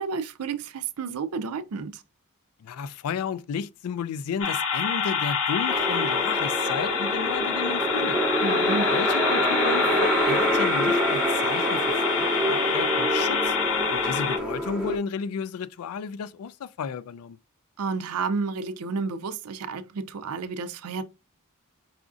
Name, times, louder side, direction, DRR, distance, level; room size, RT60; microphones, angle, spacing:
voice 1, 0.0-2.0 8.4-8.9 17.8-21.0, right 4 dB, 85° right, 0.5 m, -31 dB
voice 2, 2.6-8.2 8.8-13.6 13.9-17.4, left 6 dB, 80° left, 0.3 m, -33 dB
sound 1, 4.4-14.4, left 6 dB, 60° left, 0.7 m, -27 dB
sound 2, 5.7-15.0, right 1 dB, 5° right, 0.6 m, -26 dB
4.8 x 2.5 x 2.4 m
head